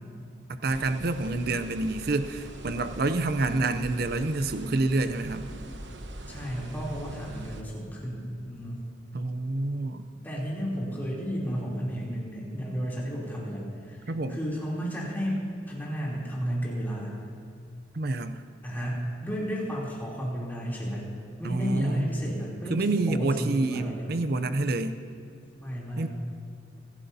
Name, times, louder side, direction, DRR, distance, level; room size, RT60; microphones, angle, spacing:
voice 1, 0.5-5.5 9.1-10.1 14.1-14.4 17.9-18.4 21.4-22.1 22.7-25.0 26.0-26.1, right 2 dB, 55° right, 10 dB, 0.6 m, -28 dB
sound 1, 0.7-7.6, right 1 dB, 70° right, 1.1 m, -42 dB
voice 2, 6.3-8.9 10.2-17.1 18.6-21.0 21.4-24.1 25.6-26.1, equal, 10° left, -6 dB, 3.2 m, -33 dB
25.0 x 11.5 x 2.8 m, 2.4 s
head